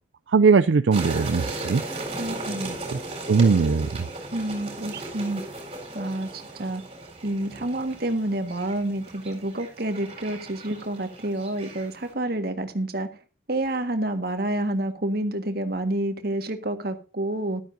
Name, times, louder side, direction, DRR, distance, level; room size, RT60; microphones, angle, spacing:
voice 1, 0.3-1.8 2.9-3.0 3.3-3.9, right 5 dB, 80° right, 12 dB, 0.5 m, -19 dB
sound 1, 0.9-12.1, right 2 dB, 30° right, 4.4 m, -37 dB
voice 2, 2.2-2.8 4.3-5.4 5.9-6.8 7.2-13.1 13.5-17.6, right 1 dB, 55° right, 7 dB, 1.7 m, -28 dB
13.5 x 12.0 x 2.7 m, 0.33 s
head